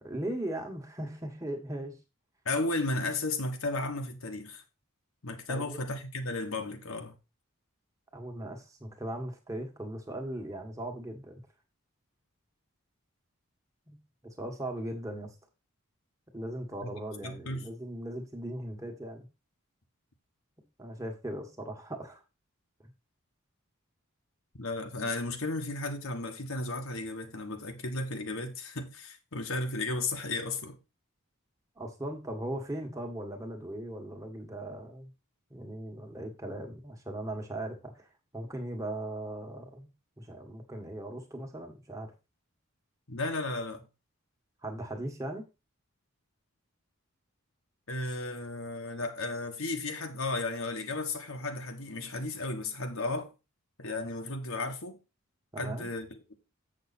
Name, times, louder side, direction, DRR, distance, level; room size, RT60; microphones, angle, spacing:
voice 1, 0.0-1.9 5.5-5.8 8.1-11.4 13.9-14.0 14.4-15.3 16.3-19.2 20.8-22.2 31.8-35.1 35.5-38.1 38.3-39.9 40.2-42.1 44.6-45.4 55.5-55.9, right 1 dB, 15° right, 1.6 m, -38 dB
voice 2, 2.4-4.6 5.2-7.2 16.8-16.9 17.2-17.7 24.6-30.8 43.1-43.8 47.9-53.3 53.8-55.0 55.6-56.3, left 2 dB, 70° left, 1.4 m, -34 dB
7.8 x 6.6 x 4.2 m
head